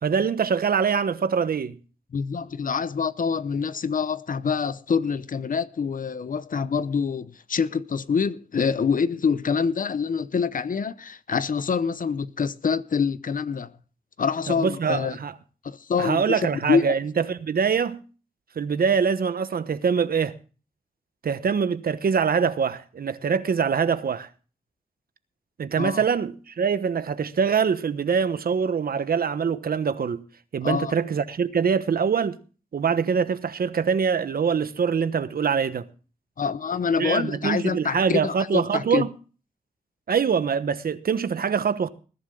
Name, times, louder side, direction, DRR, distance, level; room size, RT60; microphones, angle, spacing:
voice 1, 0.0-1.8 14.5-15.3 16.0-18.0 18.5-20.3 21.2-24.3 25.6-30.2 30.5-32.4 32.7-35.8 37.0-39.1 40.1-41.9, right 6 dB, 75° right, 1.1 m, -24 dB
voice 2, 2.1-13.7 14.2-15.2 15.6-17.0 25.8-26.0 30.6-30.9 36.4-39.0, left 6 dB, 60° left, 0.8 m, -26 dB
20.5 x 11.0 x 3.8 m
cardioid pair, 75°, 16 cm